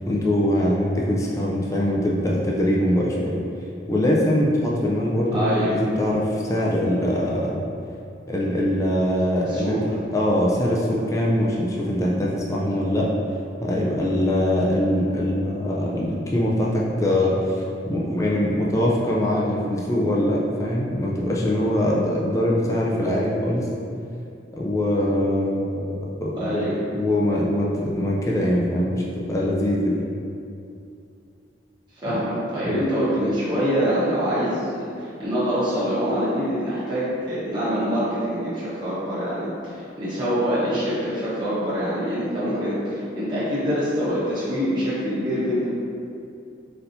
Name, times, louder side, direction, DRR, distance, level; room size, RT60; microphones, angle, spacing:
voice 1, 0.1-3.4 3.9-7.6 8.3-13.1 13.6-23.7 24.5-26.6 27.0-29.9 32.1-32.2 32.6-32.8, left 1 dB, 15° left, -4 dB, 0.4 m, -23 dB
voice 2, 5.3-5.7 9.5-9.8 26.4-26.8 32.0-39.7 40.0-45.7, equal, 25° right, -12 dB, 1.0 m, -25 dB
4.2 x 3.9 x 2.6 m, 2.5 s
head